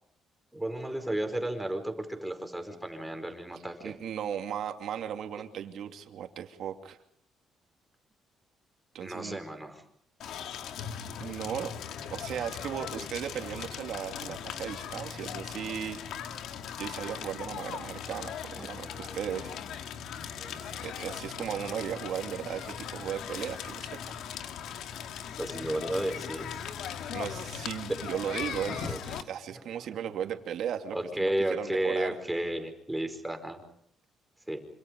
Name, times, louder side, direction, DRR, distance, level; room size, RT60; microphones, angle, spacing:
voice 1, 0.5-4.0 9.0-9.8 18.5-19.2 20.4-20.5 20.8-20.9 23.2-23.4 25.4-26.6 27.9-28.0 28.8-29.6 30.9-33.6 34.5-34.6, right 1 dB, 5° right, 6 dB, 5.0 m, -33 dB
voice 2, 3.8-7.0 8.9-9.4 11.2-11.7 12.1-16.0 16.8-19.6 20.6-24.2 27.1-32.2, right 9 dB, 70° right, 5 dB, 2.7 m, -36 dB
Crackle, 10.2-29.2, left 8 dB, 80° left, 2.2 m, -39 dB
27.0 x 26.5 x 5.4 m, 0.69 s
cardioid pair, 120°, 0 cm